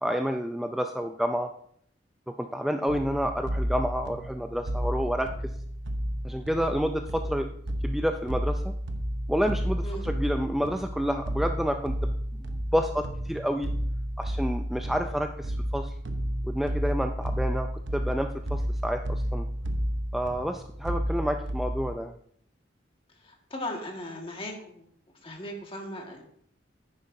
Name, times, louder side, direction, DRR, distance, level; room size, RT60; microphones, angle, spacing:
voice 1, 0.0-1.5 2.4-5.3 6.2-7.5 7.8-8.7 9.3-13.7 14.2-15.9 16.4-19.5 20.1-22.1, equal, ahead, 5 dB, 0.4 m, -29 dB
sound 1, 2.9-21.9, equal, 80° right, 0.9 m, -32 dB
voice 2, 23.2-24.9 25.2-26.2, left 1 dB, 30° left, 1 dB, 1.7 m, -37 dB
10.5 x 9.5 x 2.7 m, 0.66 s
head